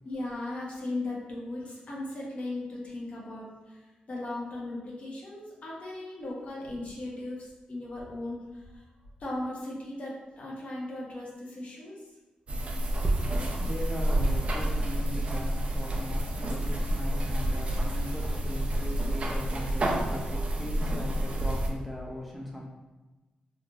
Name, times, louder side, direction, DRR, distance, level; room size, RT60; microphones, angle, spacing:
voice 1, 0.0-8.9 9.2-12.1, left 2 dB, 55° left, -4 dB, 1.0 m, -37 dB
sound 1, 12.5-21.7, right 1 dB, 45° right, 0.5 m, -29 dB
voice 2, 13.2-22.6, equal, ahead, -4 dB, 0.6 m, -39 dB
3.4 x 2.6 x 2.4 m, 1.2 s
cardioid pair, 80°, 3 cm